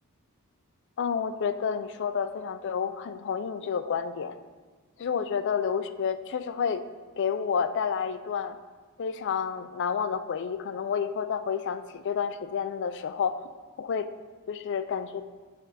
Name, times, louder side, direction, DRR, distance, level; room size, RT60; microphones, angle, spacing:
voice 1, 1.0-4.3 5.0-6.8 7.2-8.6 9.0-13.4 13.8-14.1 14.5-15.2, left 6 dB, 55° left, 10 dB, 0.4 m, -30 dB
10.0 x 3.4 x 4.0 m, 1.4 s
head